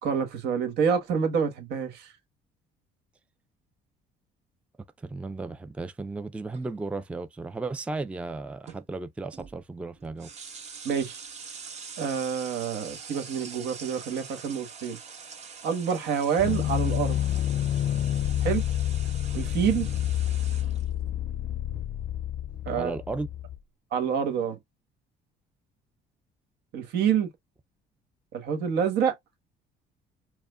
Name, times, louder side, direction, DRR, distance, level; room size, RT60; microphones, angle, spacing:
voice 1, 0.0-2.1 10.8-11.2 12.0-15.0 15.6-17.2 18.4-18.6 19.3-19.9 22.7-22.9 23.9-24.6 26.7-27.3 28.3-29.1, right 7 dB, 75° right, 1.4 m, -27 dB
voice 2, 5.0-10.3 22.7-23.3, right 3 dB, 5° right, 0.4 m, -35 dB
sound 1, 6.5-6.9 8.7-8.8 9.3-9.6 10.0-20.8, right 5 dB, 40° right, 1.3 m, -44 dB
sound 2, 16.4-23.6, left 11 dB, 55° left, 0.4 m, -28 dB
5.0 x 2.2 x 2.3 m
cardioid pair, 110°, 17 cm